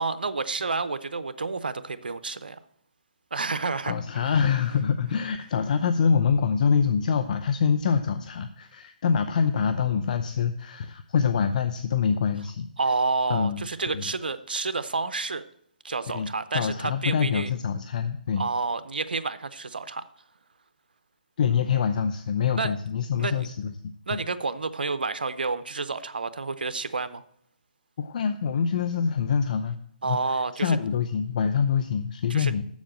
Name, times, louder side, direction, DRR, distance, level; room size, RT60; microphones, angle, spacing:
voice 1, 0.0-2.6 3.3-4.4 12.8-15.4 15.8-17.5 18.4-20.0 22.5-22.7 23.2-23.5 24.1-27.2 30.0-30.8 32.3-32.5, right 4 dB, 90° right, 12 dB, 0.7 m, -29 dB
voice 2, 3.8-12.7 13.3-13.6 13.9-14.0 16.1-16.3 16.5-18.4 21.4-23.7 24.1-24.2 28.0-29.8 30.0-32.6, left 6 dB, 55° left, 10 dB, 0.6 m, -25 dB
7.3 x 6.9 x 7.4 m, 0.69 s
hypercardioid pair, 150°, 5 cm